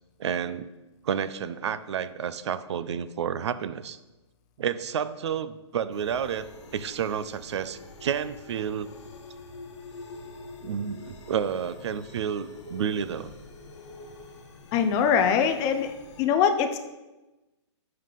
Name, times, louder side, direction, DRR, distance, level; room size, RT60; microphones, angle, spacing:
voice 1, 0.2-0.7 1.0-4.0 4.6-8.9 10.6-13.3, right 8 dB, 70° right, 14 dB, 0.4 m, -30 dB
sound 1, 5.9-16.2, left 2 dB, 70° left, 1.2 m, -46 dB
voice 2, 14.7-16.8, left 7 dB, 20° left, 8 dB, 0.4 m, -23 dB
5.5 x 5.4 x 3.8 m, 1.1 s
hypercardioid pair, 140°, 15 cm